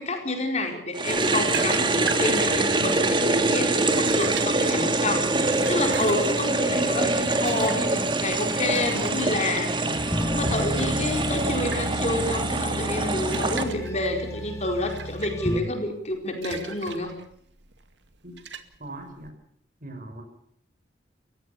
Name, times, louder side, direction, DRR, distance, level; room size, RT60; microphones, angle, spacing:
voice 1, 0.0-17.1, left 2 dB, 40° left, 4 dB, 4.8 m, -29 dB
sound 1, 0.9-13.6, right 2 dB, 25° right, 2.3 m, -24 dB
sound 2, 1.1-19.3, right 6 dB, 80° right, 2.1 m, -41 dB
sound 3, 10.0-15.6, equal, 20° left, 2.0 m, -32 dB
voice 2, 18.8-19.3 19.8-20.2, right 2 dB, 50° right, 5 dB, 6.3 m, -40 dB
29.5 x 15.5 x 7.0 m, 0.67 s
head